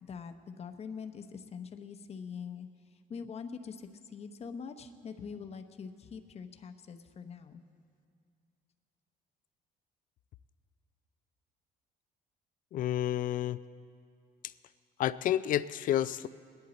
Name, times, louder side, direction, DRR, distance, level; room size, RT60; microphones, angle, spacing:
voice 1, 0.0-2.7 3.1-7.6, left 6 dB, 40° left, 8 dB, 0.8 m, -43 dB
voice 2, 12.7-13.6 15.0-16.3, left 11 dB, 55° left, 16 dB, 0.4 m, -30 dB
20.5 x 10.5 x 4.1 m, 2.3 s
cardioid pair, 110°, 17 cm